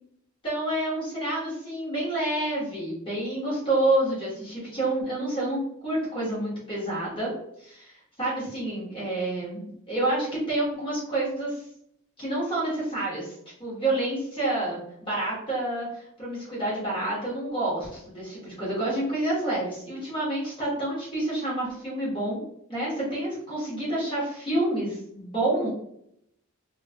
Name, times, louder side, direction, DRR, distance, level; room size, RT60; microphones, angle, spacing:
voice 1, 0.4-11.6 12.2-13.3 13.6-22.4 22.7-25.7, right 1 dB, 25° left, -7 dB, 1.3 m, -28 dB
3.0 x 2.4 x 2.7 m, 0.74 s
head